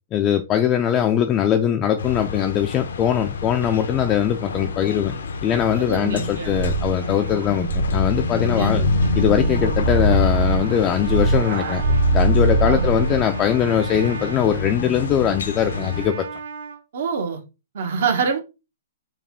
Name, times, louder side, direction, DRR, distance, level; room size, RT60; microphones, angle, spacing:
voice 1, 0.1-5.1 5.4-8.9 9.1-11.8 12.1-16.2, left 9 dB, 25° left, 0.4 m, -21 dB
sound 1, 2.0-16.1, left 4 dB, 85° left, 0.8 m, -28 dB
voice 2, 5.7-6.5 7.1-7.2 8.4-8.9 12.6-12.9 16.9-17.4 17.7-18.4, right 5 dB, 65° right, 1.2 m, -25 dB
sound 2, 6.5-13.3, right 1 dB, 50° right, 1.9 m, -22 dB
Trumpet, 8.8-16.8, right 5 dB, 85° right, 1.6 m, -37 dB
4.7 x 2.4 x 3.6 m
hypercardioid pair, 145°, 0 cm